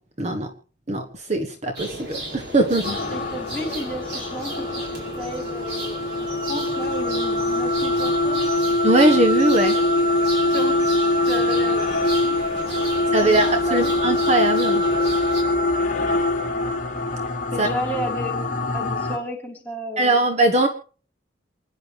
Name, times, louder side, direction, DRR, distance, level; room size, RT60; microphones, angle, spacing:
voice 1, 0.2-0.5 0.9-3.0 8.8-9.8 13.1-14.8 17.6-17.7 20.0-20.7, right 2 dB, 35° right, 5 dB, 1.4 m, -20 dB
sound 1, 1.7-15.4, right 1 dB, 60° right, 5.9 m, -35 dB
sound 2, 2.8-19.2, left 2 dB, 45° left, 2.9 m, -23 dB
voice 2, 3.1-4.9 5.2-6.0 6.5-8.5 10.5-10.9 11.3-11.8 12.2-12.9 13.2-14.0 17.5-18.4 18.7-20.2, equal, 10° left, -2 dB, 4.2 m, -33 dB
28.5 x 10.5 x 3.4 m, 0.41 s
head